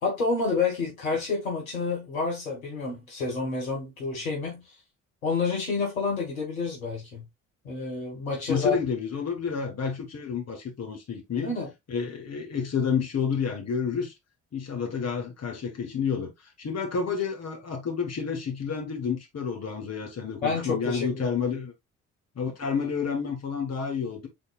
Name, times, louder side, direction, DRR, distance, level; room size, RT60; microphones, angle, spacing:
voice 1, 0.0-4.6 5.2-7.2 7.6-8.8 11.4-11.7 20.4-21.2, left 4 dB, 80° left, 1.6 m, -29 dB
voice 2, 8.5-11.5 11.9-14.1 14.5-16.3 16.6-21.7 22.3-24.3, left 6 dB, 40° left, 1.7 m, -30 dB
5.5 x 4.0 x 2.4 m
figure-of-eight pair, 45°, 41 cm